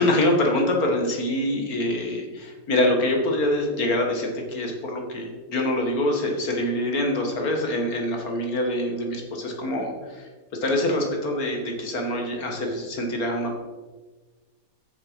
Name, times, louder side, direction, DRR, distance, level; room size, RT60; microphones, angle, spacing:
voice 1, 0.0-10.3 10.6-13.6, left 1 dB, 85° left, 2 dB, 2.2 m, -25 dB
8.2 x 6.5 x 5.6 m, 1.3 s
omnidirectional pair, 1.5 m